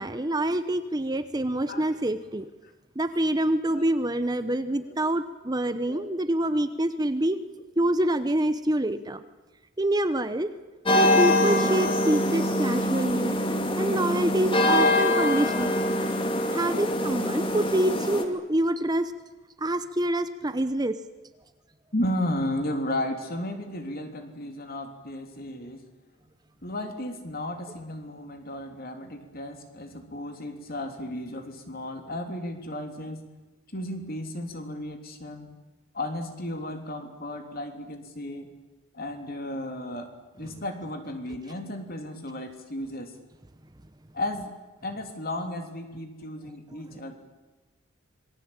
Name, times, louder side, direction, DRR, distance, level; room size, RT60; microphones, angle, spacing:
voice 1, 0.0-2.5 3.0-7.4 7.8-9.2 9.8-10.5 11.0-13.4 13.8-15.8 16.5-19.1 19.6-21.0, right 1 dB, 20° right, 11 dB, 0.8 m, -26 dB
sound 1, 10.9-18.2, left 1 dB, 25° left, 2.4 m, -24 dB
voice 2, 21.9-25.8 26.6-33.3 33.7-35.5 35.9-38.5 38.9-40.1 40.4-43.1 44.1-44.5 44.8-47.1, left 1 dB, 45° left, 6 dB, 3.3 m, -34 dB
26.5 x 21.0 x 8.9 m, 1.2 s
head